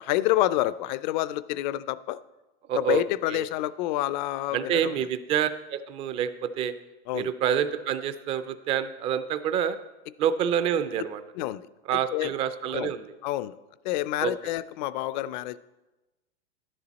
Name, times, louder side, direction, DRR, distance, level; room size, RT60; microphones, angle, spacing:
voice 1, 0.0-2.2 2.7-5.0 7.1-7.3 11.4-11.7 12.1-12.3 12.7-12.9 13.2-13.6 13.8-15.6, left 15 dB, 45° left, 18 dB, 0.4 m, -28 dB
voice 2, 2.7-3.0 3.3-3.5 4.5-6.7 7.1-9.8 10.2-11.2 11.9-13.1 14.2-14.3, right 9 dB, 20° right, 12 dB, 0.3 m, -27 dB
12.0 x 10.0 x 4.0 m, 1.1 s
supercardioid pair, 145°, 32 cm